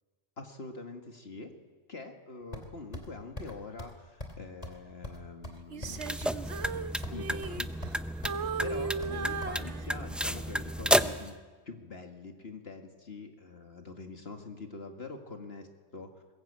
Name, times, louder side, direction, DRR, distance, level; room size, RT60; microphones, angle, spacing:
voice 1, 0.4-1.5 1.9-6.1 7.1-8.0 8.6-11.4 11.7-16.1, left 3 dB, 55° left, 4 dB, 2.0 m, -44 dB
sound 1, 2.5-3.1 3.4-3.5 3.8-3.9 4.2-4.4 4.6-4.8 5.0-6.4 6.6-7.2 7.4-8.0 8.2-9.5, left 1 dB, 30° left, 2.9 m, -42 dB
Female singing, 5.7-8.0 8.2-10.3 10.8-11.1, right 5 dB, 65° right, 1.3 m, -37 dB
sound 2, 5.8-11.3, equal, ahead, 0.4 m, -32 dB
22.0 x 20.0 x 8.7 m, 1.4 s
omnidirectional pair, 1.2 m